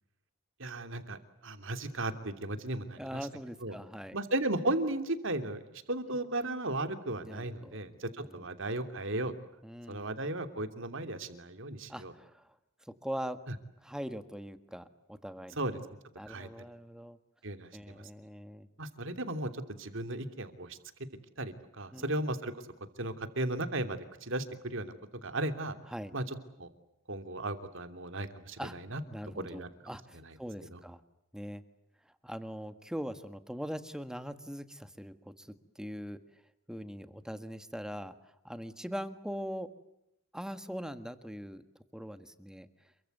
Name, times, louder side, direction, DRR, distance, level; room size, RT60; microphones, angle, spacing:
voice 1, 0.6-3.3 3.6-3.8 4.1-9.3 9.9-12.1 13.5-13.6 15.6-15.7 16.3-16.5 17.4-18.1 18.8-19.5 19.8-20.8 21.4-22.5 23.0-24.9 25.2-25.7 26.1-26.7 27.1-29.0 29.3-29.7 30.1-30.3 30.7-30.8, right 1 dB, 60° right, 8 dB, 3.0 m, -35 dB
voice 2, 3.0-4.2 7.3-7.8 8.3-8.5 9.6-10.1 11.9-12.4 13.0-13.4 13.8-15.6 16.2-17.2 17.7-18.7 21.9-22.1 25.9-26.1 28.6-28.7 29.1-31.0 31.3-31.6 32.2-35.5 35.7-36.2 36.7-38.1 38.4-39.7 40.3-41.6 41.9-42.7, equal, 5° right, 10 dB, 1.6 m, -41 dB
28.5 x 23.5 x 8.0 m, 0.82 s
head